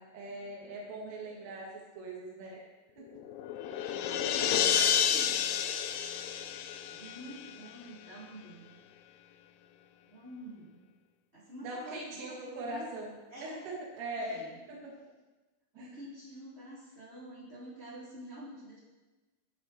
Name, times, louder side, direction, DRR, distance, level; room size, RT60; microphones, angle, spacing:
voice 1, 0.0-1.7 1.9-2.6 3.0-3.2 3.8-4.0 11.6-13.1 13.4-14.9 15.7-15.9, right 1 dB, 85° right, -2 dB, 4.8 m, -41 dB
sound 1, 3.1-7.7, left 8 dB, 90° left, 3.1 m, -30 dB
voice 2, 4.0-5.6 6.9-8.7 10.1-10.7 11.3-12.8 13.3-13.6 14.2-14.6 15.7-18.8, right 1 dB, 15° right, -7 dB, 2.6 m, -48 dB
13.0 x 11.0 x 4.5 m, 1.2 s
omnidirectional pair, 5.5 m